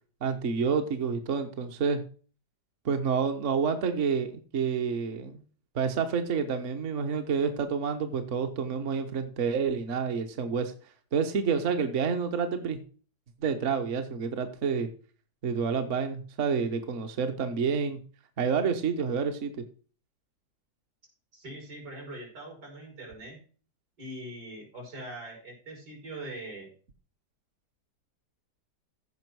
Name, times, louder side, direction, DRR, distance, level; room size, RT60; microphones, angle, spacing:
voice 1, 0.2-2.0 2.8-5.4 5.7-10.7 11.1-12.8 13.4-14.9 15.4-18.0 18.4-19.5, right 6 dB, 50° right, 7 dB, 1.2 m, -28 dB
voice 2, 21.3-23.4 24.0-26.7, right 1 dB, 80° right, -1 dB, 5.5 m, -42 dB
15.0 x 5.2 x 4.6 m, 0.41 s
omnidirectional pair, 1.8 m